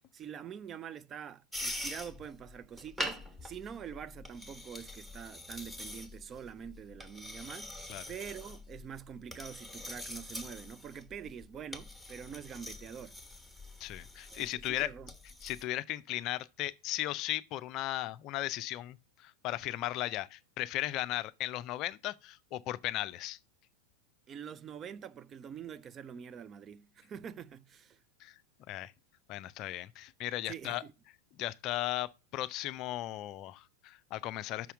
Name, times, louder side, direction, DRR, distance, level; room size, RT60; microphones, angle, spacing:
voice 1, 0.1-7.8 8.1-13.2 14.3-15.1 24.3-28.0 30.5-30.9, right 8 dB, 25° right, 0.3 m, -45 dB
sound 1, 1.5-15.6, left 1 dB, 5° right, 1.3 m, -44 dB
voice 2, 13.8-14.9 15.4-23.4 28.2-28.3 28.7-28.9 29.3-30.8 31.4-34.7, left 15 dB, 40° left, 0.4 m, -36 dB
6.1 x 5.6 x 6.0 m
figure-of-eight pair, 90°, 0 cm